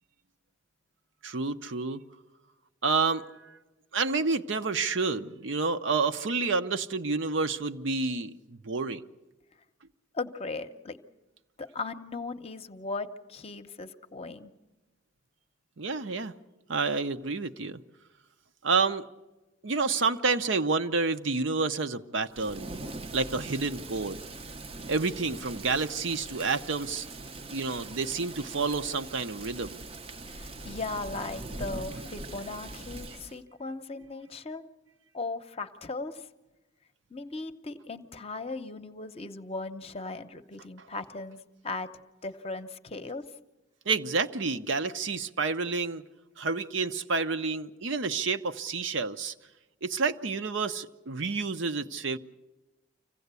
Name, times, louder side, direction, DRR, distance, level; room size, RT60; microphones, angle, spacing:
voice 1, 1.2-2.0 2.8-3.5 3.9-9.0 15.8-16.3 16.7-17.8 18.6-19.1 19.6-22.8 23.1-24.2 24.9-27.1 27.5-29.8 43.9-46.0 46.4-49.3 49.8-52.2, right 4 dB, 65° right, 10 dB, 0.7 m, -29 dB
voice 2, 10.1-11.0 11.6-14.5 30.3-34.6 35.1-36.3 37.1-41.9 42.2-43.2, left 3 dB, 30° left, 9 dB, 0.8 m, -37 dB
Thunder / Rain, 22.3-33.4, right 2 dB, 30° right, 0.6 m, -42 dB
25.5 x 16.5 x 8.2 m, 1.1 s
head